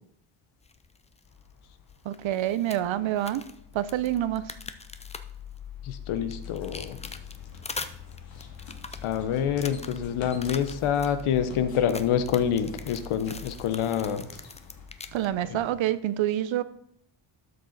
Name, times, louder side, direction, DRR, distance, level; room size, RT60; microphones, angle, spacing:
sound 1, 0.6-15.3, left 3 dB, 15° left, 0.5 m, -44 dB
sound 2, 1.2-15.7, left 7 dB, 45° left, 1.2 m, -46 dB
voice 1, 2.0-3.4 3.7-4.4 15.1-16.6, right 12 dB, 70° right, 0.7 m, -27 dB
voice 2, 5.8-7.0 9.0-14.3 15.4-15.7, left 8 dB, 90° left, 1.0 m, -27 dB
sound 3, 6.3-14.9, left 4 dB, 65° left, 2.4 m, -50 dB
12.0 x 6.7 x 4.0 m
cardioid pair, 100°, 48 cm